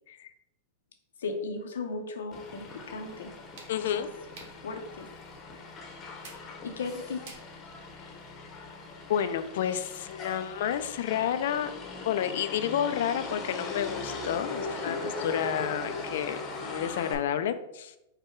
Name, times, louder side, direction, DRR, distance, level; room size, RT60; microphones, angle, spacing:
voice 1, 1.2-3.3 3.8-4.1 4.6-5.1 6.6-7.2 14.9-15.1, left 4 dB, 90° left, 5 dB, 0.7 m, -36 dB
Motor vehicle (road), 2.3-17.1, left 3 dB, 30° left, 0.8 m, -40 dB
sound 1, 2.7-8.3, right 3 dB, 60° right, 1.3 m, -55 dB
voice 2, 3.7-4.1 9.1-11.7 12.0-18.0, left 9 dB, 70° left, 11 dB, 0.4 m, -30 dB
4.8 x 2.2 x 4.4 m, 0.89 s
hypercardioid pair, 130°, 0 cm